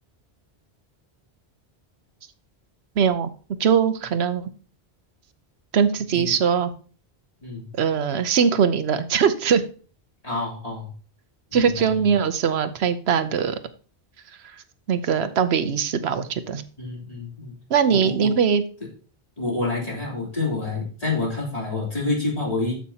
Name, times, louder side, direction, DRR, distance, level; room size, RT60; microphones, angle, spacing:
voice 1, 3.0-3.3 3.6-4.5 5.7-6.7 7.8-9.6 11.5-13.6 14.9-16.6 17.7-18.6, right 7 dB, 75° right, 11 dB, 1.0 m, -21 dB
voice 2, 10.2-10.9 11.5-11.9 16.8-17.5 17.9-18.3 19.4-22.7, left 3 dB, 35° left, -4 dB, 3.5 m, -28 dB
13.5 x 5.7 x 2.8 m, 0.40 s
omnidirectional pair, 1.1 m